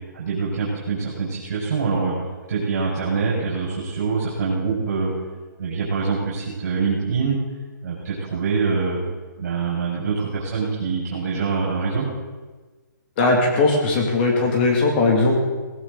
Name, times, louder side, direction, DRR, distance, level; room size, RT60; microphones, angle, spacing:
voice 1, 0.1-2.1 2.5-5.1 5.6-7.4 7.8-9.0 9.4-12.1, right 5 dB, 55° right, -5 dB, 5.4 m, -24 dB
voice 2, 13.2-15.4, left 3 dB, 30° left, 0 dB, 2.6 m, -19 dB
18.0 x 17.0 x 4.1 m, 1.3 s
hypercardioid pair, 160°, 11 cm